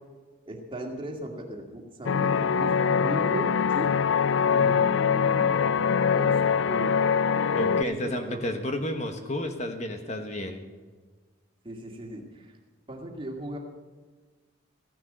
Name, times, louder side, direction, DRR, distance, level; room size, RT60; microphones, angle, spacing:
voice 1, 0.5-3.9 4.5-5.5 6.0-7.0 7.4-8.5 11.6-12.6 12.9-13.6, right 1 dB, 25° right, 1 dB, 2.1 m, -37 dB
sound 1, 2.0-7.8, left 6 dB, 70° left, 0.5 m, -23 dB
voice 2, 7.5-10.6, left 1 dB, 35° left, 5 dB, 1.2 m, -31 dB
15.0 x 10.5 x 7.5 m, 1.4 s
head